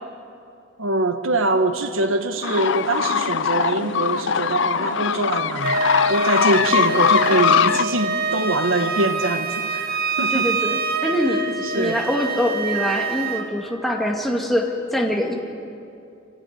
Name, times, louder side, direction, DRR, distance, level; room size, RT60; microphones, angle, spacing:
voice 1, 0.8-10.8 11.2-11.3 11.6-12.0, right 2 dB, 85° right, 1.5 m, -24 dB
sound 1, 2.4-7.8, left 7 dB, 65° left, 0.5 m, -21 dB
Wind instrument woodwind instrument, 5.6-13.5, right 3 dB, 50° right, 1.8 m, -25 dB
voice 2, 10.3-15.3, left 1 dB, ahead, 2.0 m, -24 dB
25.0 x 16.0 x 9.3 m
head